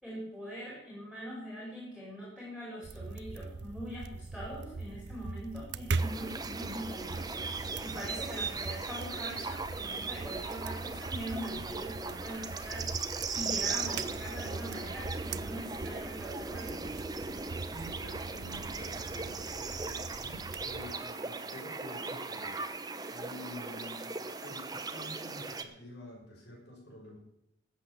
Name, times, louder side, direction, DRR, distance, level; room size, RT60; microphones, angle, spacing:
voice 1, 0.0-13.0 13.3-16.8, equal, 5° left, -5 dB, 5.1 m, -42 dB
sound 1, 2.8-20.9, right 3 dB, 65° right, 0.7 m, -41 dB
sound 2, 6.0-25.6, right 4 dB, 20° right, 0.9 m, -38 dB
voice 2, 17.7-24.1 24.4-27.2, left 1 dB, 60° left, -1 dB, 6.2 m, -48 dB
14.5 x 8.3 x 7.2 m, 0.81 s
head